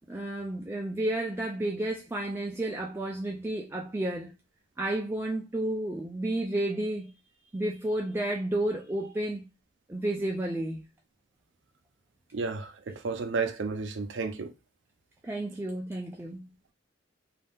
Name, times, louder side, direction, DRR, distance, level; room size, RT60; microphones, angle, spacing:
voice 1, 0.1-4.3 4.8-7.1 7.5-9.4 9.9-10.8 15.2-16.4, right 1 dB, 10° right, 0.3 m, -31 dB
voice 2, 12.3-14.5, right 4 dB, 65° right, 0.5 m, -32 dB
2.7 x 2.4 x 3.5 m
head